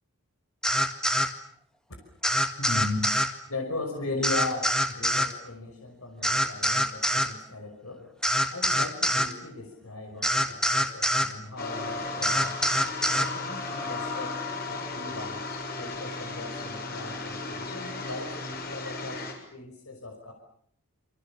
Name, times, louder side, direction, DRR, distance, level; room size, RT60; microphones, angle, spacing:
sound 1, 0.6-1.3 2.2-3.3 4.2-5.3 6.2-7.3 8.2-9.3 10.2-11.3 12.2-13.3, equal, 5° left, 1.8 m, -25 dB
voice 1, 2.6-3.2 3.5-8.1 8.5-12.6 13.1-14.4 14.7-15.5 15.8-19.3 19.5-20.3, left 2 dB, 75° left, 3 dB, 5.7 m, -37 dB
sound 2, 11.6-19.3, left 3 dB, 40° left, 6.9 m, -35 dB
28.5 x 26.0 x 7.3 m, 0.66 s
head